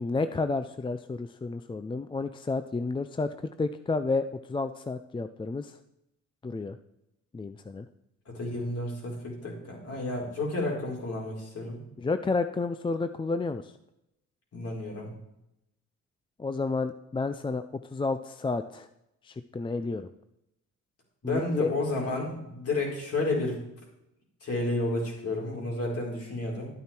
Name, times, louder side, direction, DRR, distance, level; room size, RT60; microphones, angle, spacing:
voice 1, 0.0-5.8 6.4-6.8 7.3-7.9 12.0-13.7 16.4-18.9 19.2-20.1 21.2-21.7, left 3 dB, 15° left, 10 dB, 0.5 m, -31 dB
voice 2, 8.3-11.8 14.5-15.1 21.2-23.6 24.4-26.7, left 2 dB, 55° left, -2 dB, 4.5 m, -31 dB
11.5 x 9.3 x 4.4 m, 0.85 s
cardioid pair, 90°, 30 cm